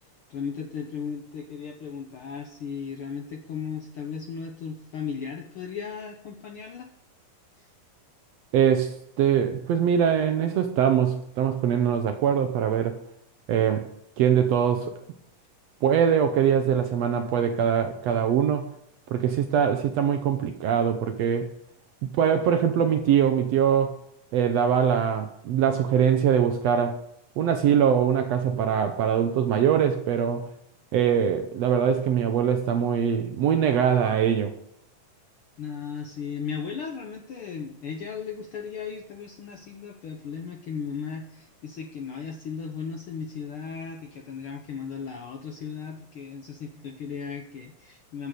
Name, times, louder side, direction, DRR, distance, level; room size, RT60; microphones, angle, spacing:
voice 1, 0.3-6.9 7.6-7.7 35.6-48.3, left 6 dB, 65° left, 1.4 m, -36 dB
voice 2, 8.5-13.0 13.5-13.9 14.2-15.0 15.8-18.7 19.1-21.5 22.1-24.0 24.3-27.0 27.4-30.5 30.9-34.5, right 8 dB, 70° right, 1.7 m, -23 dB
14.0 x 6.9 x 6.6 m
omnidirectional pair, 3.6 m